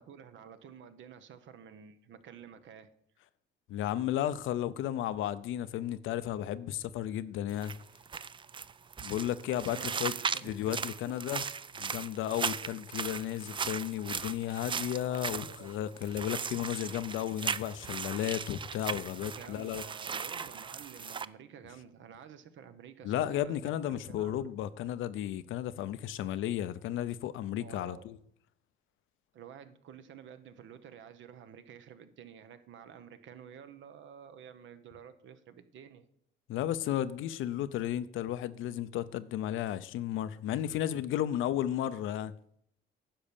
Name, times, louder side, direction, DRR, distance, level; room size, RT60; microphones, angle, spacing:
voice 1, 0.0-2.9 9.6-10.8 11.1-11.2 15.0-15.7 19.4-24.5 27.6-28.1 29.3-36.1, right 8 dB, 70° right, 0.9 m, -51 dB
voice 2, 3.7-7.8 9.0-10.1 10.4-11.4 11.8-19.8 23.0-28.2 36.5-42.3, left 11 dB, 85° left, 0.6 m, -34 dB
sound 1, 7.5-21.3, right 6 dB, 25° right, 0.3 m, -38 dB
10.0 x 5.3 x 7.0 m
cardioid pair, 90°, 20 cm